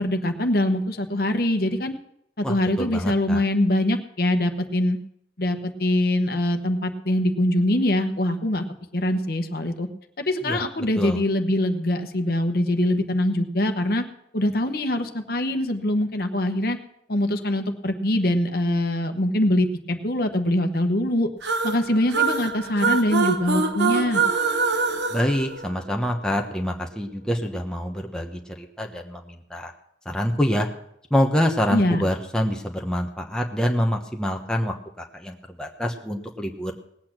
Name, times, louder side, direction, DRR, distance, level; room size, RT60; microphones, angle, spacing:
voice 1, 0.0-2.0 2.4-5.0 5.4-8.6 8.9-9.9 10.3-14.0 14.3-16.8 17.1-21.3 21.6-24.2 31.7-32.0, left 1 dB, 55° left, 7 dB, 1.1 m, -23 dB
voice 2, 2.4-3.4 10.4-10.6 11.0-11.2 25.1-29.7 30.0-30.7 31.1-36.7, equal, 5° left, 2 dB, 1.1 m, -26 dB
sound 1, 21.4-26.2, right 5 dB, 75° right, 1.4 m, -25 dB
19.0 x 8.6 x 6.0 m, 0.74 s
head